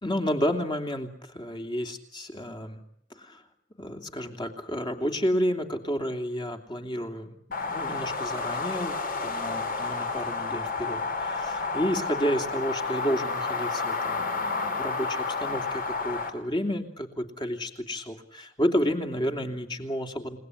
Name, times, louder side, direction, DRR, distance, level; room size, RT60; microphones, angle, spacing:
voice 1, 0.0-2.8 3.2-3.4 3.8-20.4, equal, 25° left, 5 dB, 3.0 m, -31 dB
sound 1, 7.5-16.3, left 4 dB, 50° left, 3.6 m, -30 dB
30.0 x 19.0 x 9.8 m, 0.76 s
head